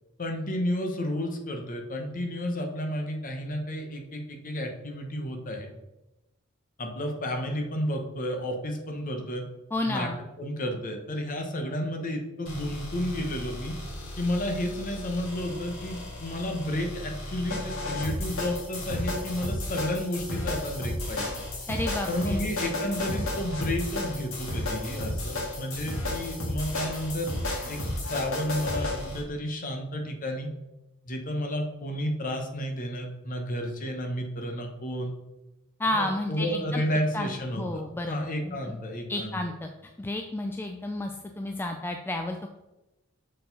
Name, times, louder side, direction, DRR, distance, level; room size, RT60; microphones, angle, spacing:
voice 1, 0.2-5.7 6.8-9.4 9.9-13.7 14.2-21.3 22.1-27.3 27.7-27.8 28.1-30.5 31.0-35.1 35.9-37.8 38.1-39.4, equal, 40° left, 3 dB, 1.0 m, -31 dB
voice 2, 9.7-10.2 21.7-22.6 35.8-36.8 37.1-38.7 39.1-39.7 40.0-42.5, left 1 dB, 10° left, 3 dB, 0.3 m, -31 dB
sound 1, 12.4-29.2, left 1 dB, 75° left, 1.9 m, -33 dB
6.5 x 4.4 x 4.0 m, 0.98 s
head